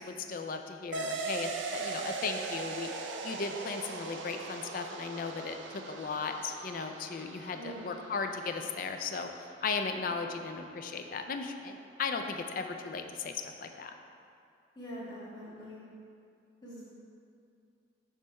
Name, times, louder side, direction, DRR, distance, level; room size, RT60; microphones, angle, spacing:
voice 1, 0.0-2.9 3.2-9.3 9.6-13.9, left 4 dB, 50° left, 6 dB, 0.4 m, -36 dB
sound 1, 0.9-9.9, right 4 dB, 80° right, 0.5 m, -40 dB
voice 2, 7.5-7.9 14.7-15.8 16.6-16.8, equal, 20° left, -8 dB, 1.4 m, -44 dB
6.4 x 3.1 x 5.3 m, 2.4 s
head